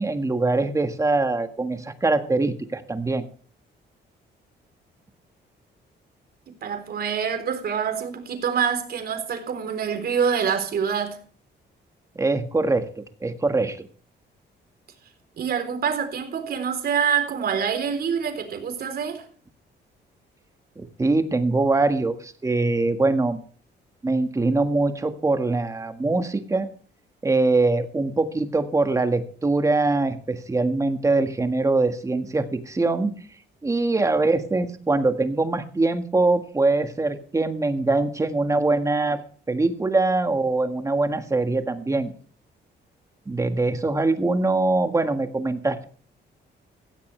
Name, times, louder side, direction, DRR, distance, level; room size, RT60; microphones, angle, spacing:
voice 1, 0.0-3.2 12.1-13.9 20.8-23.4 24.0-26.7 27.2-33.1 33.6-39.2 39.5-42.1 43.3-45.8, right 3 dB, 15° right, 1.6 m, -23 dB
voice 2, 6.5-11.2 15.4-19.2, right 7 dB, 60° right, 3.7 m, -26 dB
16.5 x 15.0 x 3.3 m
cardioid pair, 150°, 18 cm